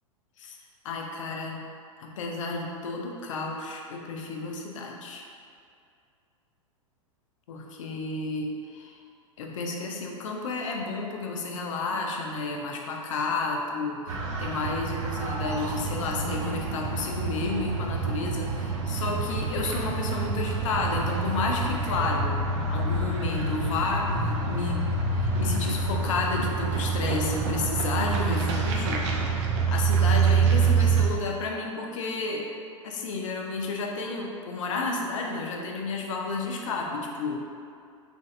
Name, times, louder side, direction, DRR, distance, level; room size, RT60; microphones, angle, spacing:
voice 1, 0.8-1.6 2.0-5.2 7.5-9.0 9.4-22.3 22.7-29.0 29.7-32.5 32.8-37.4, left 3 dB, 65° left, 0 dB, 0.5 m, -31 dB
Casa de campo, 14.1-31.1, right 4 dB, 55° right, 0.5 m, -27 dB
3.0 x 2.5 x 2.6 m, 2.4 s
hypercardioid pair, 100°, 17 cm